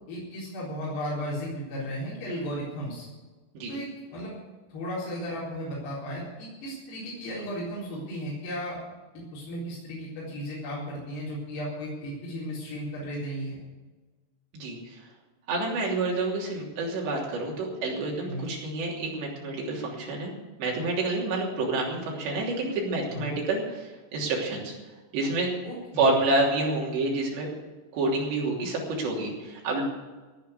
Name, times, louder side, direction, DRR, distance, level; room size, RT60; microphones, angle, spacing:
voice 1, 0.1-3.1 3.7-4.3 4.7-8.8 9.3-13.6 18.3-18.5 23.1-23.4 25.6-26.1, equal, 70° left, -8 dB, 6.2 m, -35 dB
voice 2, 14.5-15.0 15.5-20.3 20.6-24.7 25.1-25.5 26.0-27.5 27.9-29.8, right 2 dB, 85° right, -2 dB, 5.3 m, -28 dB
17.5 x 8.6 x 8.2 m, 1.3 s
omnidirectional pair, 4.8 m